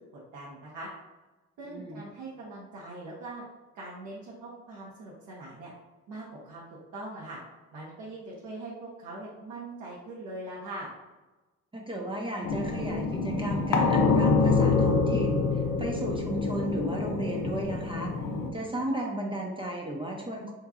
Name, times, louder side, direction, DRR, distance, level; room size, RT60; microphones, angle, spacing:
voice 1, 0.3-0.9 1.6-3.4 3.7-5.7 6.1-6.6 6.9-7.4 7.7-10.9, right 2 dB, 80° right, -5 dB, 0.8 m, -41 dB
voice 2, 1.7-2.0 11.7-18.1 18.5-20.5, right 1 dB, 15° right, -1 dB, 0.5 m, -34 dB
sound 1, 12.4-18.5, left 4 dB, 80° left, 0.6 m, -26 dB
3.8 x 2.9 x 2.3 m, 1.1 s
cardioid pair, 90°, 30 cm